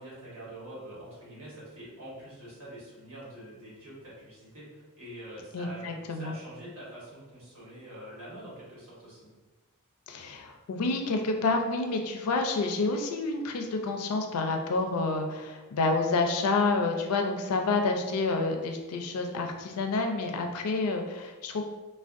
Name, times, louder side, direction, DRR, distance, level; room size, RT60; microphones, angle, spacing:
voice 1, 0.0-9.3, right 1 dB, 65° right, -8 dB, 1.3 m, -45 dB
voice 2, 5.5-6.4 10.1-21.6, left 3 dB, 75° left, 4 dB, 0.4 m, -29 dB
3.4 x 2.2 x 2.5 m, 1.2 s
head